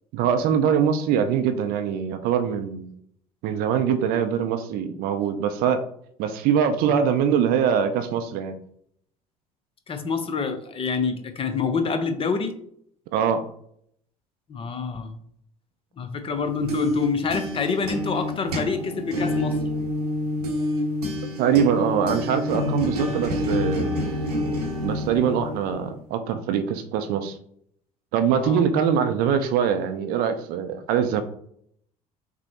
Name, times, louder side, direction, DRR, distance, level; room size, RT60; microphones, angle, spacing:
voice 1, 0.1-2.9 3.4-5.8 6.2-8.6 13.1-13.5 21.4-23.9 24.8-27.4 28.1-31.2, right 8 dB, 50° right, 8 dB, 0.5 m, -23 dB
voice 2, 9.9-12.5 14.5-15.1 16.0-19.6 28.3-28.6, left 5 dB, 30° left, 8 dB, 0.6 m, -27 dB
sound 1, 16.3-26.0, left 1 dB, 80° right, 0.8 m, -28 dB
6.0 x 2.0 x 2.8 m, 0.68 s
figure-of-eight pair, 60°, 20 cm